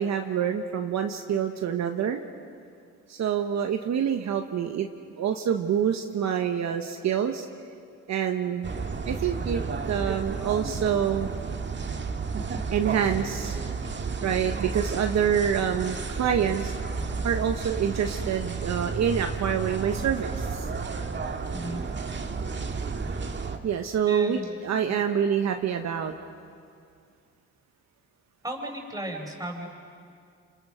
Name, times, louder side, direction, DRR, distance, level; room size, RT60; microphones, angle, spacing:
voice 1, 0.0-2.2 3.1-4.9 5.1-7.5 8.1-8.7 9.0-9.6 9.9-11.3 12.7-13.6 14.2-16.7 17.2-20.7 23.6-26.1, right 8 dB, 65° right, 5 dB, 1.2 m, -26 dB
sound 1, 8.6-23.6, right 4 dB, 40° right, 1.8 m, -32 dB
voice 2, 24.1-25.0 28.4-29.6, right 1 dB, 10° right, 1 dB, 5.1 m, -35 dB
28.0 x 26.5 x 6.3 m, 2.3 s
cardioid pair, 90°, 30 cm